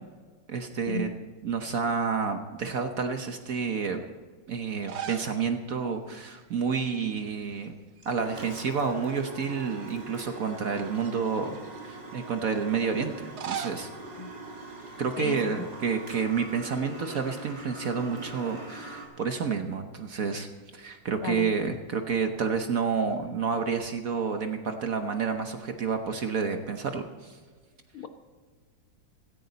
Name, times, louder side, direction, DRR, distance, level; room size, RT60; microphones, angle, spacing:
voice 1, 0.5-1.1 1.4-4.0 4.5-7.7 8.0-13.9 15.0-27.4, right 5 dB, 50° right, 6 dB, 1.1 m, -29 dB
sound 1, 4.7-5.4 5.7-5.8 7.2-7.7 8.0-9.1 9.7-9.8 10.7-11.8 13.1-15.3, right 8 dB, 85° right, 0.5 m, -41 dB
sound 2, 8.0-19.0, right 2 dB, 30° right, 4.3 m, -42 dB
voice 2, 15.2-15.7 21.2-21.5 27.9-28.1, left 5 dB, 85° left, 8 dB, 1.9 m, -34 dB
16.5 x 15.0 x 4.1 m, 1.5 s
omnidirectional pair, 2.2 m